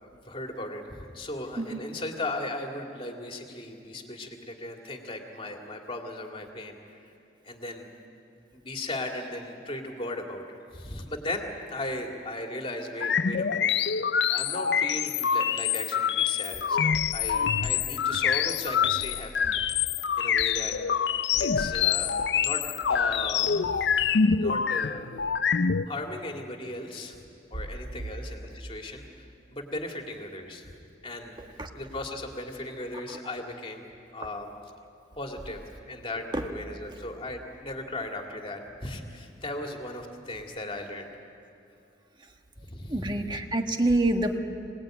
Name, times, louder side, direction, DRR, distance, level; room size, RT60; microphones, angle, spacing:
voice 1, 0.0-6.8 7.4-7.9 8.5-14.0 14.3-19.3 20.2-20.7 21.4-22.1 22.4-25.1 25.9-27.2 27.5-29.2 29.5-30.8 31.0-31.4 31.7-33.8 34.1-34.5 35.2-41.1 42.6-43.4, left 1 dB, 30° left, 2 dB, 2.5 m, -37 dB
sound 1, 13.0-25.8, left 7 dB, 70° left, 0.5 m, -26 dB
voice 2, 42.9-44.4, right 1 dB, 25° right, 4 dB, 1.5 m, -26 dB
26.0 x 19.0 x 9.0 m, 2.5 s
head